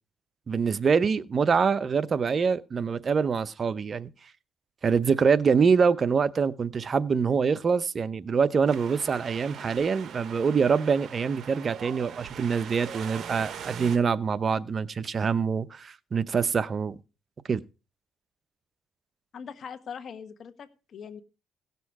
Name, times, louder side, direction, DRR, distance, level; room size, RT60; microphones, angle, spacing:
voice 1, 0.5-4.1 4.8-17.0 17.5-17.6, right 5 dB, 45° right, 0.7 m, -25 dB
Wind, 8.7-14.0, right 8 dB, 65° right, 1.0 m, -41 dB
voice 2, 19.3-21.2, left 7 dB, 60° left, 1.5 m, -41 dB
17.0 x 6.9 x 4.8 m
cardioid pair, 90°, 0 cm